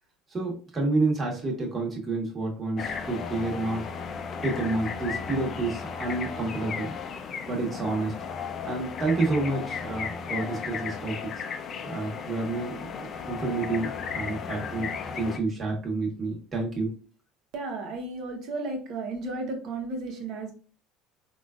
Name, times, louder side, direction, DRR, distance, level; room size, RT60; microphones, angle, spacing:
voice 1, 0.3-3.8 4.4-6.9 7.5-8.1 8.6-11.4 11.9-12.9 13.3-14.9 15.1-16.9, right 3 dB, 30° right, -1 dB, 1.2 m, -29 dB
sound 1, 2.8-15.4, left 6 dB, 45° left, 0.4 m, -35 dB
voice 2, 17.5-20.5, right 2 dB, 55° right, 3 dB, 0.9 m, -33 dB
3.7 x 2.4 x 2.4 m, 0.38 s
supercardioid pair, 100°, 0 cm